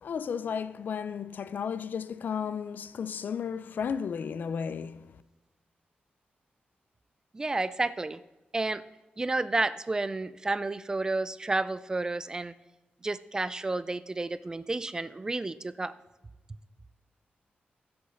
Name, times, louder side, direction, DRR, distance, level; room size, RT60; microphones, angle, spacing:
voice 1, 0.0-5.1, left 7 dB, 60° left, 0.5 m, -34 dB
voice 2, 7.3-8.2 8.5-8.8 9.2-12.5 13.0-15.9, right 2 dB, 20° right, 0.3 m, -31 dB
10.5 x 7.8 x 5.6 m
wide cardioid pair, 180°, 3 cm